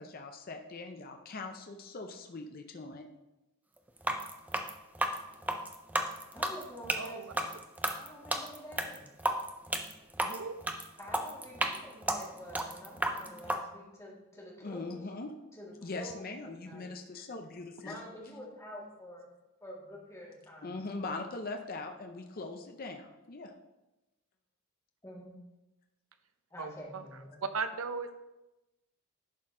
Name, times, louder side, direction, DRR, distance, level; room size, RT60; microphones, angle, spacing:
voice 1, 0.0-3.1 14.6-15.3 15.8-18.0 20.6-23.5, left 3 dB, 40° left, 4 dB, 0.6 m, -41 dB
sound 1, 4.0-13.6, right 1 dB, 5° right, 0.4 m, -33 dB
voice 2, 6.3-7.5 8.0-9.1 11.0-15.1 15.5-16.9 17.8-19.3 19.6-20.7 25.0-25.3 26.5-27.4, equal, 15° left, -4 dB, 1.7 m, -48 dB
voice 3, 7.0-7.3 10.2-10.6 26.6-27.0 27.4-28.1, right 4 dB, 75° right, 10 dB, 0.6 m, -37 dB
11.0 x 4.3 x 3.8 m, 0.99 s
head